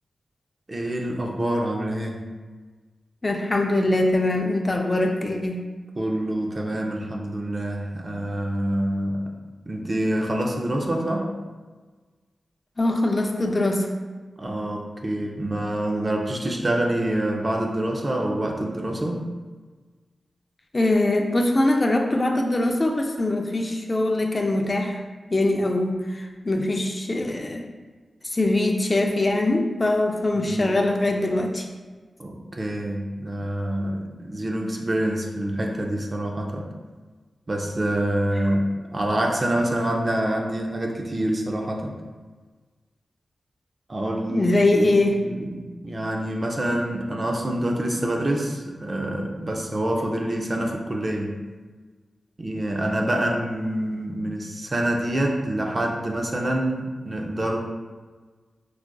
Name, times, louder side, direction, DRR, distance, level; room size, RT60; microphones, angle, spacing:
voice 1, 0.7-2.2 6.0-9.3 9.7-11.3 14.4-19.3 30.3-30.8 32.2-36.7 37.5-41.9 43.9-51.4 52.4-57.6, right 1 dB, 35° right, 1 dB, 0.5 m, -26 dB
voice 2, 3.2-5.6 12.8-13.9 20.7-25.0 25.3-27.6 28.2-31.7 44.3-45.2, left 2 dB, 35° left, 2 dB, 0.4 m, -22 dB
4.8 x 2.4 x 2.2 m, 1.4 s
wide cardioid pair, 75°, 0 cm